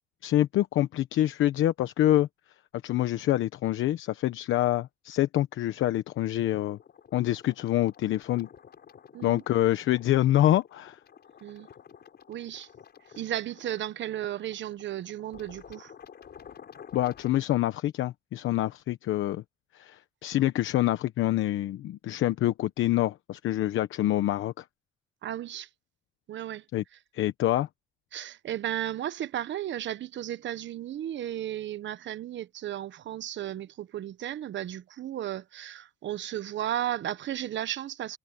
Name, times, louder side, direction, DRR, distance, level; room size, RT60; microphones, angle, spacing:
voice 1, 0.2-2.3 2.8-6.8 7.1-8.5 9.2-11.0 16.9-19.4 19.7-24.6 26.7-26.8 27.1-27.7, left 14 dB, 80° left, 1.0 m, -26 dB
sound 1, 6.5-17.4, left 8 dB, 55° left, 5.5 m, -52 dB
voice 2, 12.3-12.7 13.1-15.9 25.2-25.7 26.3-26.6 28.1-38.2, right 12 dB, 65° right, 1.1 m, -34 dB
cardioid pair, 90°, 20 cm